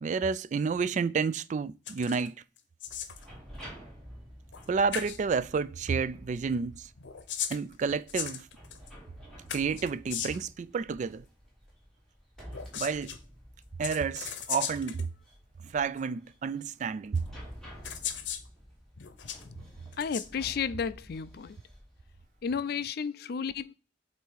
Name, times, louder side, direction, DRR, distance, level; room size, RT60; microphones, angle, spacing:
voice 1, 0.0-2.3 4.7-6.8 7.5-8.4 9.5-11.2 12.8-13.1 13.8-15.1 15.7-17.2, right 5 dB, 40° right, 0.3 m, -30 dB
sound 1, 1.9-2.3 2.6-3.3 4.5-4.7 4.9-5.2 7.0-8.9 9.5-10.5 12.5-13.2 13.8-15.1 16.0-16.1 17.2-17.3 17.8-18.5 19.0-19.4 19.9-20.3, left 9 dB, 80° left, 0.7 m, -37 dB
sound 2, 2.9-22.6, equal, 5° left, 2.6 m, -50 dB
voice 2, 20.0-21.6 22.4-23.7, left 6 dB, 60° left, 0.4 m, -33 dB
8.0 x 2.7 x 4.6 m
head